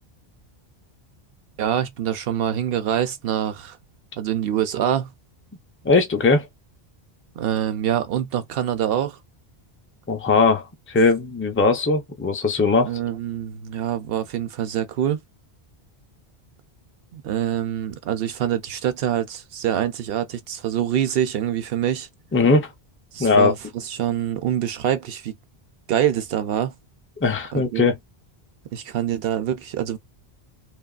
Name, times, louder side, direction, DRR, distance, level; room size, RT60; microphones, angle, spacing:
voice 1, 1.6-3.8 4.2-5.1 7.4-9.2 12.8-15.2 17.1-22.1 23.1-25.3 25.9-26.7 27.5-27.9 28.7-30.0, right 10 dB, 70° right, 0.7 m, -25 dB
voice 2, 5.8-6.5 10.1-12.9 22.3-22.7 23.2-23.5 27.2-27.9, left 3 dB, 20° left, 0.3 m, -19 dB
2.9 x 2.3 x 2.3 m
omnidirectional pair, 1.1 m